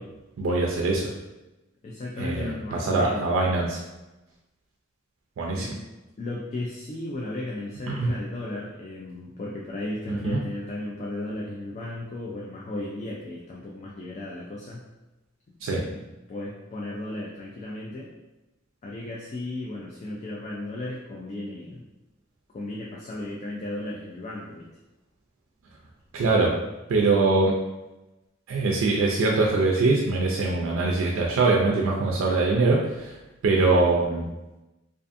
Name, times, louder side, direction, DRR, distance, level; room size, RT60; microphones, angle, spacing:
voice 1, 0.4-1.1 2.2-3.8 5.4-5.7 7.9-8.1 10.1-10.4 15.6-15.8 26.1-26.5 26.9-27.5 28.5-34.3, right 3 dB, 90° right, -1 dB, 0.4 m, -23 dB
voice 2, 1.8-3.3 5.5-5.7 6.2-14.9 15.5-16.0 16.3-18.1 18.8-21.8 22.5-24.7, left 2 dB, 35° left, -3 dB, 0.3 m, -35 dB
2.4 x 2.4 x 2.5 m, 1.0 s
head